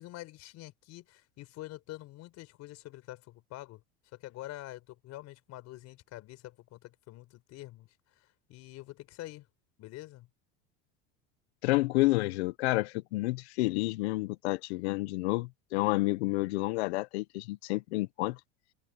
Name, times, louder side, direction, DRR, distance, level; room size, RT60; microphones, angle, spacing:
voice 1, 0.0-3.8 4.1-9.5 9.8-10.3, left 16 dB, 55° left, 4.8 m, -46 dB
voice 2, 11.6-18.4, left 21 dB, 85° left, 1.0 m, -29 dB
supercardioid pair, 115°, 32 cm